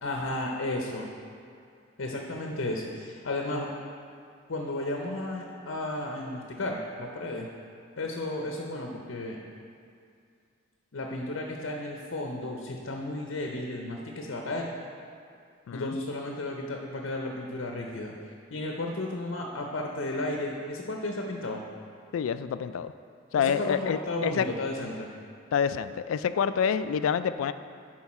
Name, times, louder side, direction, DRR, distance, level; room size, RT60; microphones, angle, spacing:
voice 1, 0.0-1.1 2.0-3.7 4.5-7.5 8.0-9.4 10.9-14.7 15.7-18.1 18.5-21.6 23.4-25.1, left 2 dB, 70° left, 1 dB, 0.7 m, -33 dB
voice 2, 22.1-22.9 23.3-24.5 25.5-27.5, left 7 dB, 90° left, 13 dB, 0.3 m, -27 dB
10.5 x 4.6 x 4.2 m, 2.3 s
head